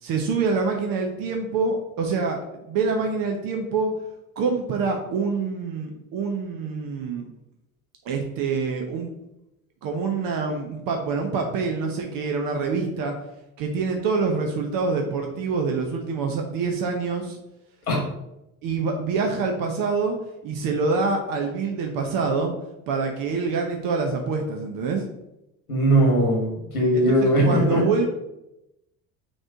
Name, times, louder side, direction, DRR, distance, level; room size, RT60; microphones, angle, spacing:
voice 1, 0.0-2.4 2.7-3.9 4.4-7.3 8.0-9.1 9.8-13.1 13.6-17.4 18.6-20.2 20.4-22.5 22.9-25.1 26.9-28.1, right 4 dB, 50° right, 3 dB, 1.0 m, -26 dB
voice 2, 25.7-27.8, right 1 dB, 90° left, -2 dB, 1.9 m, -20 dB
6.4 x 3.1 x 5.0 m, 0.89 s
figure-of-eight pair, 60°, 42 cm